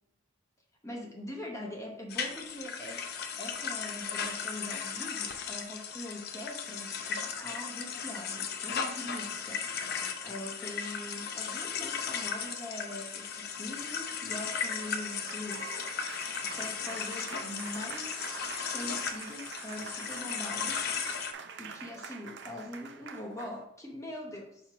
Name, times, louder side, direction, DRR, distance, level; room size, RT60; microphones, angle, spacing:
voice 1, 0.8-3.1 3.4-9.6 10.2-15.7 16.4-18.3 18.7-20.9 21.6-24.6, left 1 dB, 15° left, 0 dB, 0.9 m, -42 dB
sound 1, 2.1-21.3, left 6 dB, 50° left, 0.6 m, -36 dB
Applause, 14.4-23.6, right 6 dB, 55° right, 0.5 m, -45 dB
6.3 x 3.1 x 4.9 m, 0.80 s
head